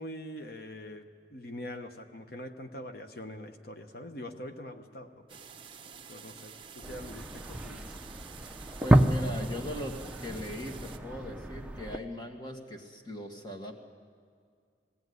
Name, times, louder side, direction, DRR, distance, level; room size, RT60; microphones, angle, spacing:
voice 1, 0.0-5.4 6.1-7.8, left 1 dB, 55° left, 6 dB, 1.1 m, -43 dB
sound 1, 5.3-11.0, right 6 dB, 30° right, 1.1 m, -49 dB
sound 2, 6.8-12.0, right 1 dB, 5° right, 0.6 m, -30 dB
voice 2, 8.8-10.0 10.2-13.7, left 1 dB, 25° left, 3 dB, 2.0 m, -39 dB
20.5 x 16.5 x 9.5 m, 2.2 s
head